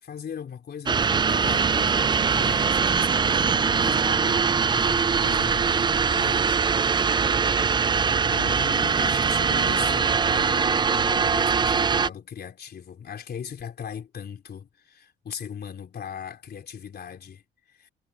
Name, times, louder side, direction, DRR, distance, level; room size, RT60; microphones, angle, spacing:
voice 1, 0.0-7.1 7.5-17.9, left 8 dB, 55° left, 3.7 m, -39 dB
sound 1, 0.9-12.1, right 6 dB, 25° right, 0.3 m, -22 dB
cardioid pair, 90°, 20 cm